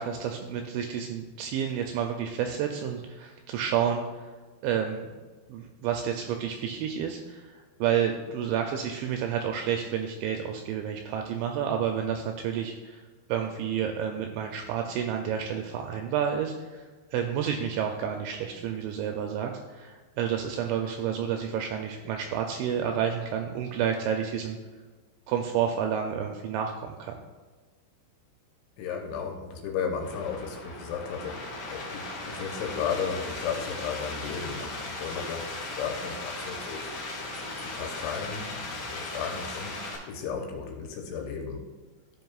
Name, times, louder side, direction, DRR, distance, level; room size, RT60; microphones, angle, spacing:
voice 1, 0.0-4.0 4.6-5.1 5.5-13.0 13.3-16.8 17.1-24.6 25.3-27.1, right 8 dB, 85° right, 3 dB, 2.6 m, -30 dB
voice 2, 28.8-31.4 31.7-41.7, left 6 dB, 80° left, 2 dB, 3.0 m, -35 dB
sound 1, 30.0-40.0, left 2 dB, 55° left, 2.3 m, -37 dB
13.5 x 5.3 x 2.4 m, 1.3 s
omnidirectional pair, 5.6 m